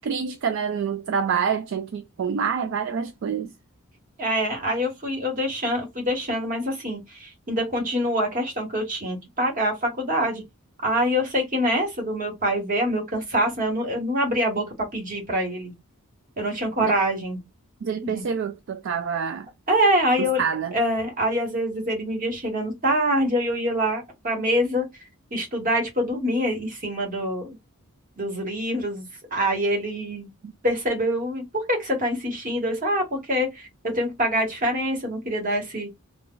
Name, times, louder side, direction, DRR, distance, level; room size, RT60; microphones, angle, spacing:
voice 1, 0.0-3.5 14.6-14.7 17.8-19.5 20.2-20.7 30.4-30.5, right 6 dB, 55° right, 0.3 m, -27 dB
voice 2, 4.2-10.4 10.8-15.7 16.4-17.4 18.0-18.2 19.7-20.4 20.7-24.8 25.3-27.6 28.2-30.3 30.6-35.9, equal, 35° right, 1.2 m, -25 dB
2.4 x 2.4 x 3.6 m
head